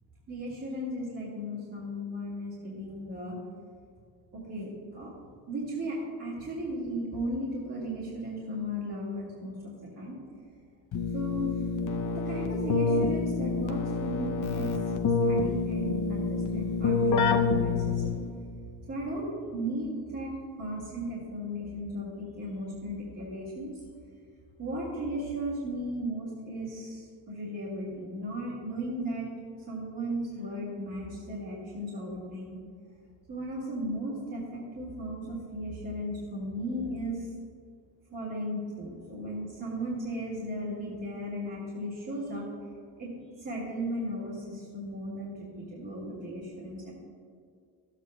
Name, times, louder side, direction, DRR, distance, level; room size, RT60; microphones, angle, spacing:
voice 1, 0.3-3.4 4.3-5.1 5.5-10.2 11.1-11.6 12.1-14.8 15.2-18.1 18.9-20.3 20.6-23.7 24.6-29.3 29.7-32.6 33.3-37.3 38.1-42.7 43.0-43.1 43.4-46.9, equal, 35° right, -8 dB, 2.0 m, -36 dB
Keyboard (musical), 10.9-18.5, left 4 dB, 45° left, 0.7 m, -28 dB
12.5 x 8.3 x 2.3 m, 2.2 s
cardioid pair, 115°, 43 cm